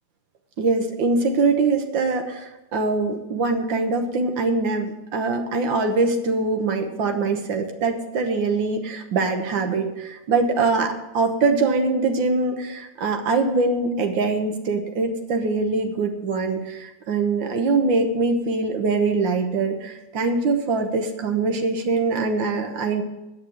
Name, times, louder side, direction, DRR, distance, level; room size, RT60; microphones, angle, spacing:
voice 1, 0.6-23.0, right 3 dB, 90° right, 5 dB, 1.9 m, -23 dB
8.9 x 6.6 x 8.7 m, 1.0 s
omnidirectional pair, 2.0 m